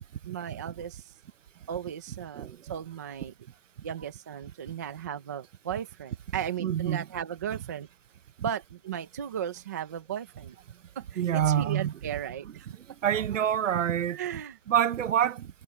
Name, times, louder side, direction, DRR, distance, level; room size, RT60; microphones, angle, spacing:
voice 1, 0.3-1.1 1.7-3.3 3.8-7.9 8.4-10.6 11.0-12.7 14.1-14.6, right 9 dB, 15° right, 0.6 m, -36 dB
voice 2, 6.6-7.1 11.2-11.9 13.0-14.2 14.7-15.5, right 10 dB, 85° right, 0.9 m, -26 dB
hypercardioid pair, 175°, 37 cm